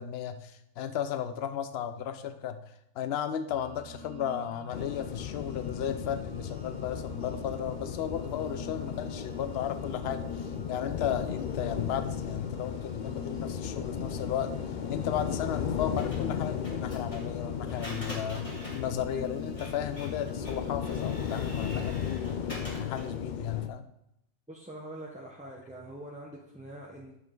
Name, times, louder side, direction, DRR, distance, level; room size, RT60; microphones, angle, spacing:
voice 1, 0.0-2.6 2.9-14.5 14.9-22.4 22.8-23.8, left 9 dB, 55° left, 10 dB, 0.8 m, -35 dB
sound 1, 3.5-21.3, left 1 dB, 60° right, 2.0 m, -46 dB
sound 2, 4.7-23.7, left 8 dB, 75° left, 0.4 m, -35 dB
Printer, 16.0-23.2, left 1 dB, 25° left, 2.1 m, -46 dB
voice 2, 24.5-27.1, right 1 dB, 5° right, -4 dB, 0.8 m, -44 dB
10.5 x 7.0 x 3.8 m, 0.81 s
omnidirectional pair, 1.4 m